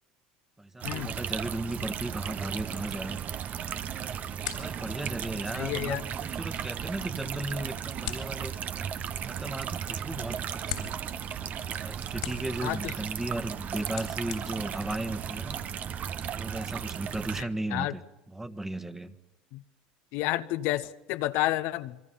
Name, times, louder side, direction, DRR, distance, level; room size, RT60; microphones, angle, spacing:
voice 1, 0.6-3.2 4.5-8.5 9.2-11.0 11.8-15.6 16.3-18.0 18.3-19.1, right 1 dB, 10° right, 1.4 m, -36 dB
sound 1, 0.8-17.4, right 8 dB, 45° right, 0.8 m, -35 dB
sound 2, 3.6-15.7, left 13 dB, 85° left, 3.6 m, -45 dB
voice 2, 5.5-6.0 12.6-12.8 17.7-17.9 19.5-19.6 20.1-22.1, left 16 dB, 65° left, 0.7 m, -30 dB
28.5 x 22.0 x 5.5 m
hypercardioid pair, 90°, 4 cm